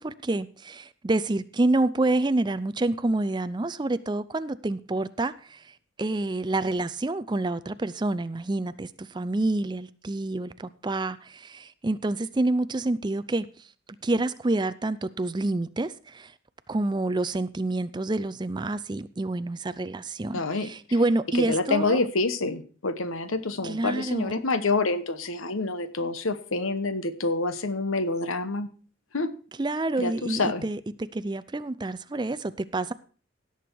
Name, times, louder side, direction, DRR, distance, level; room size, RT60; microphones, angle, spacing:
voice 1, 0.0-5.7 6.0-13.5 14.0-16.3 16.7-22.0 23.6-24.3 29.6-32.9, right 2 dB, 20° right, 0.4 m, -28 dB
voice 2, 20.3-20.7 21.5-28.7 29.1-29.3 30.0-30.6, left 3 dB, 85° left, 1.1 m, -27 dB
17.0 x 7.0 x 4.7 m
head